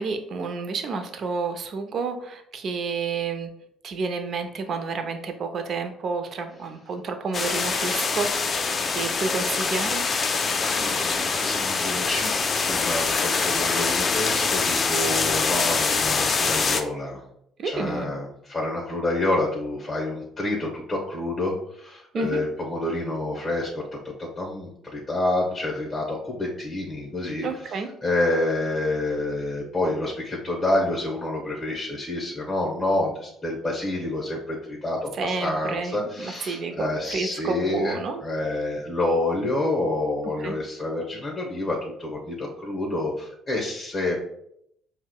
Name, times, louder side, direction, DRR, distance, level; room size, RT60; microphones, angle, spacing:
voice 1, 0.0-3.5 3.8-8.6 8.9-10.0 17.6-18.1 22.1-22.4 27.4-27.9 35.1-38.2 40.4-40.6, right 4 dB, 55° right, 7 dB, 0.4 m, -30 dB
sound 1, 7.3-16.8, left 4 dB, 40° left, 0.3 m, -24 dB
voice 2, 10.6-17.2 17.6-27.5 28.0-44.2, left 2 dB, 15° left, -2 dB, 0.9 m, -28 dB
4.6 x 2.1 x 2.2 m, 0.73 s
supercardioid pair, 75°, 0 cm